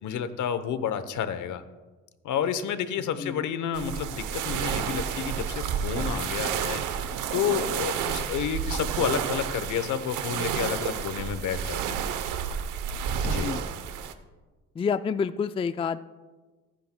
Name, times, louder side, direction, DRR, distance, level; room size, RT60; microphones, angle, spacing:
voice 1, 0.0-1.6 2.2-6.8 7.3-12.0 13.2-13.5, left 8 dB, 75° left, 12 dB, 0.9 m, -30 dB
sound 1, 3.7-14.1, right 8 dB, 85° right, 0.8 m, -30 dB
voice 2, 13.2-13.6 14.8-16.0, left 6 dB, 20° left, 13 dB, 0.3 m, -28 dB
20.5 x 10.0 x 2.2 m, 1.3 s
cardioid pair, 90°, 30 cm